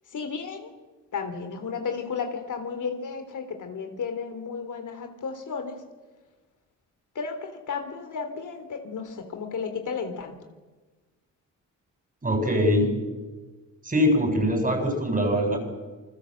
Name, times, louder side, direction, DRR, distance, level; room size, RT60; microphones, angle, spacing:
voice 1, 0.1-0.7 1.1-5.8 7.2-10.3 14.6-14.7, left 5 dB, 65° left, 7 dB, 3.5 m, -33 dB
voice 2, 12.2-12.9 13.8-15.6, equal, 25° right, 4 dB, 7.6 m, -22 dB
28.0 x 21.0 x 7.9 m, 1.3 s
cardioid pair, 85°, 33 cm